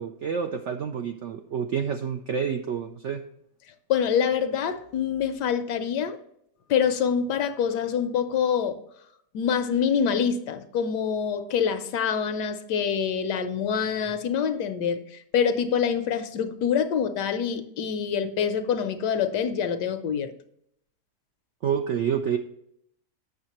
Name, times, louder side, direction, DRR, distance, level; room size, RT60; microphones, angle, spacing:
voice 1, 0.0-3.2 21.6-22.4, right 7 dB, 75° right, 0.6 m, -28 dB
voice 2, 3.9-6.2 6.7-8.8 9.3-20.3, left 7 dB, 80° left, 1.3 m, -26 dB
8.1 x 6.3 x 2.9 m
omnidirectional pair, 1.8 m